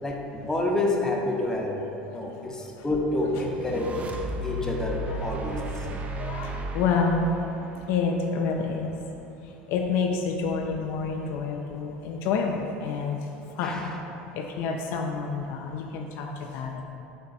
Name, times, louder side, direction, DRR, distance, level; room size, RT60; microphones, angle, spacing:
voice 1, 0.0-1.8 2.1-3.9 4.4-5.9 13.6-14.0, left 2 dB, 10° left, -1 dB, 0.6 m, -28 dB
sound 1, 3.4-8.7, right 1 dB, 30° right, 0.3 m, -35 dB
voice 2, 5.1-7.3 7.9-9.0 9.7-13.2 13.5-13.9 14.3-16.8, left 5 dB, 60° left, 2 dB, 0.3 m, -29 dB
4.8 x 2.1 x 4.0 m, 2.9 s
hypercardioid pair, 85°, 5 cm